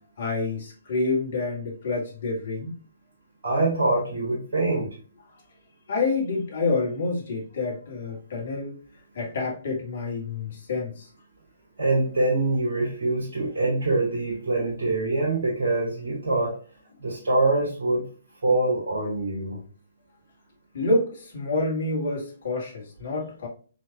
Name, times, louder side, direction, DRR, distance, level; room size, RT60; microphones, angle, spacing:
voice 1, 0.2-2.7 5.9-8.8 9.2-11.1 20.7-23.5, left 3 dB, 50° left, 1.9 m, -28 dB
voice 2, 3.4-4.9 11.8-16.6 17.0-18.1 18.4-19.6, right 2 dB, 55° right, 1.5 m, -24 dB
4.4 x 4.2 x 2.3 m
figure-of-eight pair, 130°, 0 cm